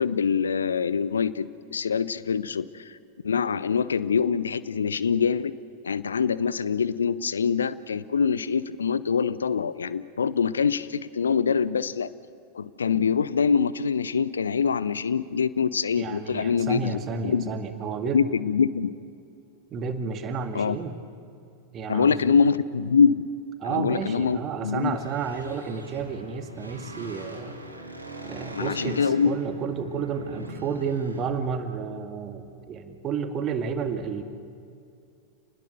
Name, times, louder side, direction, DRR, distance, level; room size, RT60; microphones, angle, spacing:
voice 1, 0.0-3.0 3.2-5.5 5.8-12.1 12.5-17.5 18.1-18.9 20.5-20.8 21.9-23.3 23.6-25.0 28.5-29.3, left 6 dB, 70° left, 17 dB, 0.7 m, -24 dB
voice 2, 16.0-18.2 19.7-21.0 21.7-22.4 23.6-27.6 28.3-34.2, right 6 dB, 30° right, 6 dB, 2.1 m, -31 dB
sound 1, 24.9-31.2, right 1 dB, 85° right, 3.0 m, -41 dB
28.5 x 20.0 x 6.7 m, 2.4 s
figure-of-eight pair, 90°, 0 cm